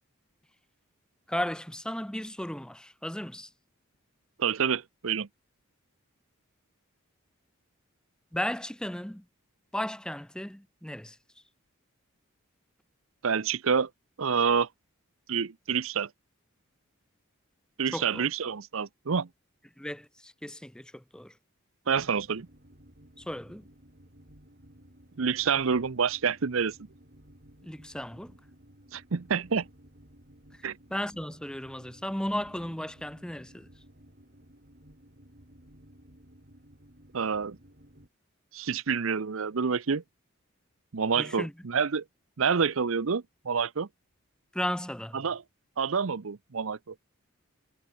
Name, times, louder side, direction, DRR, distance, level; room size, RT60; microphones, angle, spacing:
voice 1, 1.3-3.5 8.3-9.2 9.7-11.2 17.9-18.3 19.8-21.3 23.2-23.7 27.6-28.4 30.9-33.7 41.2-41.5 44.5-45.2, left 1 dB, 5° left, 0.8 m, -35 dB
voice 2, 4.4-5.3 13.2-13.9 14.2-14.7 15.3-16.1 17.8-19.3 21.9-22.5 25.2-26.8 28.9-29.7 30.6-30.8 37.1-37.6 38.5-40.0 40.9-42.0 42.4-43.9 45.1-45.4 45.8-46.9, right 6 dB, 70° right, 0.7 m, -28 dB
sound 1, 21.9-38.1, equal, 45° right, 4.9 m, -56 dB
head